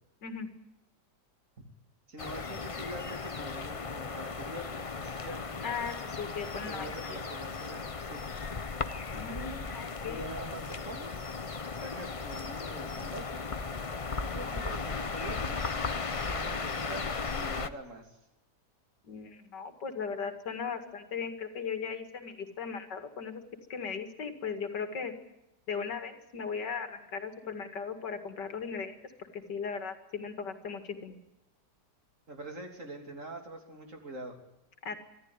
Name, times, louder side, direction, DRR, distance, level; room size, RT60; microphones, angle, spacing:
voice 1, 2.1-5.6 6.6-8.4 10.1-11.3 11.7-13.4 14.3-15.6 16.1-17.1 17.3-18.2 32.3-34.3, right 1 dB, 45° right, 4 dB, 3.4 m, -44 dB
sound 1, 2.2-17.7, left 4 dB, 35° left, 0.5 m, -36 dB
voice 2, 5.6-7.2 9.1-10.3 19.0-23.4 23.7-25.1 25.7-31.2 34.8-34.9, left 5 dB, 85° left, 8 dB, 2.7 m, -38 dB
24.5 x 13.5 x 9.8 m, 0.90 s
omnidirectional pair, 1.8 m